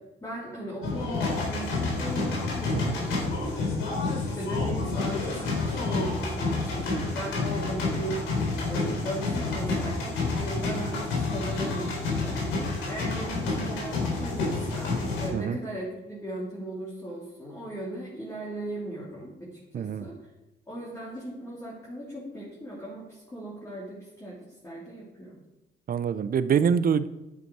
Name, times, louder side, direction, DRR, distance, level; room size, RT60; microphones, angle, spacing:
voice 1, 0.2-3.5 4.2-20.1 20.7-25.4, right 1 dB, 15° left, -6 dB, 3.2 m, -37 dB
sound 1, 0.8-15.3, left 3 dB, 80° left, 3.5 m, -29 dB
voice 2, 19.7-20.1 25.9-27.1, right 7 dB, 45° right, 14 dB, 0.6 m, -25 dB
10.5 x 8.1 x 4.7 m, 1.0 s
cardioid pair, 90°, 20 cm